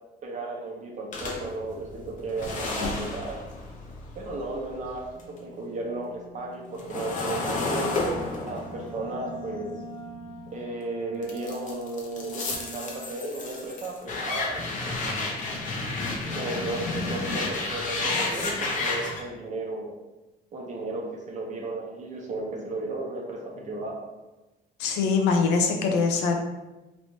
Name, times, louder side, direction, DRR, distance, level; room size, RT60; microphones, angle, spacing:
voice 1, 0.2-3.4 4.1-7.9 8.4-9.8 10.5-15.3 16.3-19.9 20.5-24.1, right 2 dB, 45° right, 0 dB, 0.8 m, -34 dB
sound 1, 1.1-5.4 5.7-10.7 11.2-19.2, left 3 dB, 50° left, 0.8 m, -32 dB
Wind instrument woodwind instrument, 7.2-13.2, right 1 dB, 25° left, 0.3 m, -42 dB
voice 2, 24.8-26.4, left 5 dB, 85° left, 3 dB, 0.6 m, -23 dB
3.1 x 3.1 x 2.7 m, 1.1 s
cardioid pair, 110°, 17 cm